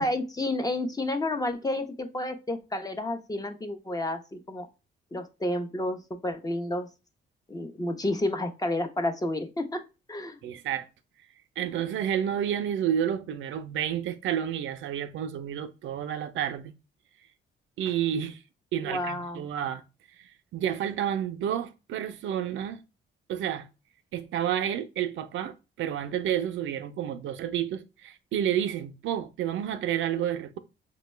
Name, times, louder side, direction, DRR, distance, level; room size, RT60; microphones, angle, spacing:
voice 1, 0.0-4.7 5.1-6.9 7.5-9.8 10.1-10.4 18.8-19.5, left 1 dB, 20° left, 0.7 m, -30 dB
voice 2, 10.4-10.9 11.6-16.7 17.8-18.4 18.7-19.8 20.5-22.8 23.3-23.7 24.1-30.6, right 10 dB, 75° right, 0.5 m, -30 dB
5.2 x 2.2 x 3.1 m
cardioid pair, 90°, 20 cm